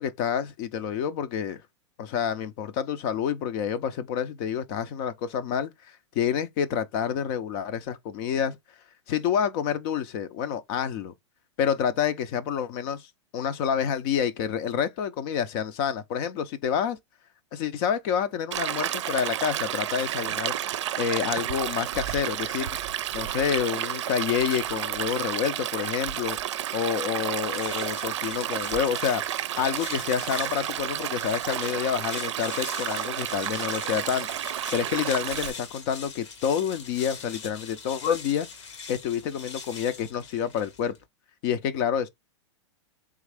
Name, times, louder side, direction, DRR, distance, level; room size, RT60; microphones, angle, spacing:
voice 1, 0.0-1.6 2.0-8.6 9.1-11.1 11.6-13.1 13.3-17.0 17.5-20.5 21.0-22.7 23.1-26.4 26.7-29.2 29.6-34.3 34.7-38.5 38.9-41.0 41.4-42.1, left 8 dB, 45° left, 0.6 m, -28 dB
Stream, 18.5-35.5, right 12 dB, 75° right, 0.5 m, -31 dB
sound 1, 27.4-41.0, left 5 dB, 75° left, 1.2 m, -43 dB
3.6 x 3.2 x 3.4 m
hypercardioid pair, 125°, 15 cm